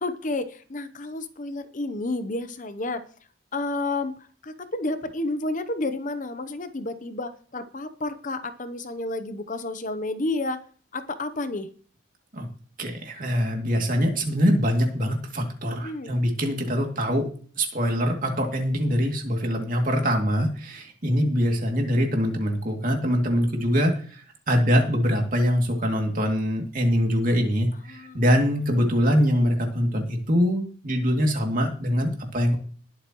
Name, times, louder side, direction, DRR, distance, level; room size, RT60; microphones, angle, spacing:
voice 1, 0.0-3.0 3.5-4.2 4.4-10.6 10.9-11.7 15.8-16.1 27.9-28.2, left 2 dB, 40° left, 11 dB, 0.8 m, -30 dB
voice 2, 12.8-17.3 17.6-24.2 24.5-32.6, equal, 45° right, 2 dB, 2.6 m, -23 dB
20.0 x 7.9 x 3.1 m, 0.43 s
head